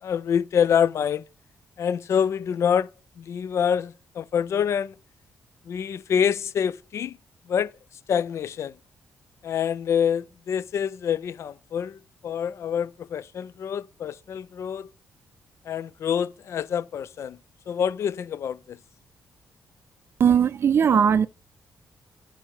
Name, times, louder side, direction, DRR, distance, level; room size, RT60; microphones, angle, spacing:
voice 1, 0.0-1.2 1.8-2.9 3.2-4.9 5.7-7.2 7.5-7.7 8.1-8.8 9.4-14.9 15.6-17.4 17.7-18.8, left 8 dB, 55° left, 0.3 m, -26 dB
voice 2, 20.2-21.3, right 7 dB, 45° right, 0.4 m, -19 dB
7.5 x 5.5 x 4.5 m
cardioid pair, 120°, 6 cm